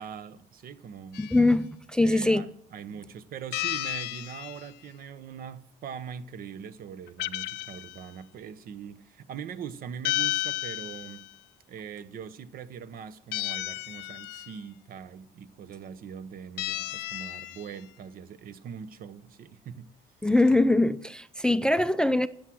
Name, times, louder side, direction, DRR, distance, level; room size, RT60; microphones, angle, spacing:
voice 1, 0.0-1.2 2.0-11.3 11.7-19.9, right 7 dB, 60° right, 0.9 m, -42 dB
sound 1, 1.1-1.4 3.5-4.7 7.1-8.0 10.0-11.3 13.3-14.6 16.6-17.7, left 17 dB, 85° left, 0.5 m, -33 dB
voice 2, 1.2-2.4 20.2-22.3, left 2 dB, 5° left, 0.4 m, -22 dB
13.5 x 8.7 x 6.2 m
cardioid pair, 110°, 17 cm